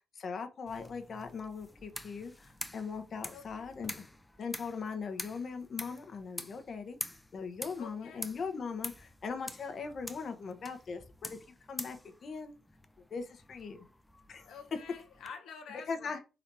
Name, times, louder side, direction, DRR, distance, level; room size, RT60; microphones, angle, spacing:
voice 1, 0.1-3.9 4.4-11.4 11.7-12.0 12.2-12.5 13.1-13.8 14.3-14.5 15.9-16.2, left 5 dB, 50° left, 0.9 m, -40 dB
sound 1, 0.7-15.3, left 1 dB, 10° left, 0.5 m, -47 dB
voice 2, 3.3-3.7 7.8-8.3 14.4-16.2, left 6 dB, 75° left, 0.8 m, -48 dB
4.0 x 2.8 x 4.6 m
cardioid pair, 90°, 0 cm